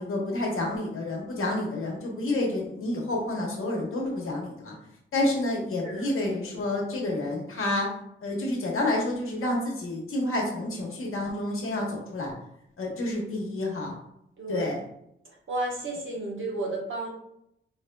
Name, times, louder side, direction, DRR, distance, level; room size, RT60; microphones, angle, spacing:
voice 1, 0.0-4.7 5.1-7.9 8.2-12.3 12.8-13.9 14.5-14.8, left 1 dB, 85° left, -1 dB, 1.1 m, -29 dB
voice 2, 14.4-14.7 15.5-17.1, right 2 dB, 70° right, -2 dB, 1.1 m, -32 dB
4.2 x 3.2 x 2.2 m, 0.77 s
wide cardioid pair, 120°, 21 cm